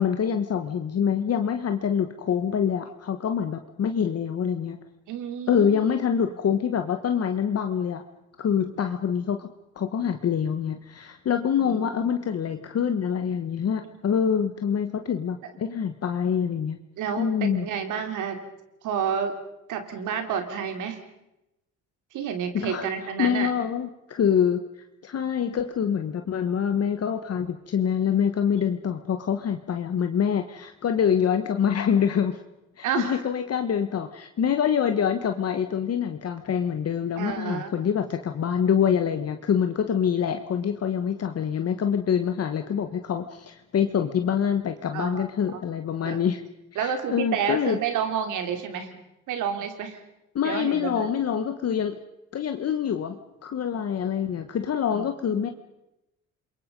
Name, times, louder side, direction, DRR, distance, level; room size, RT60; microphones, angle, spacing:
voice 1, 0.0-4.8 5.5-8.0 8.4-9.5 9.7-16.8 17.2-17.7 22.5-24.6 25.0-32.4 32.8-46.4 46.7-47.8 50.3-52.0 52.3-55.5, left 8 dB, 55° left, 7 dB, 1.4 m, -25 dB
voice 2, 5.1-5.7 8.6-8.7 11.7-12.1 13.8-13.9 17.0-18.4 18.8-19.4 19.7-21.0 22.1-23.5 32.8-33.2 37.2-37.7 44.9-45.3 46.0-46.2 46.7-48.9 49.3-50.0 50.4-51.1 54.9-55.1 55.3-55.5, right 7 dB, 85° right, 7 dB, 3.1 m, -30 dB
28.0 x 22.5 x 5.3 m, 0.90 s
cardioid pair, 90°, 30 cm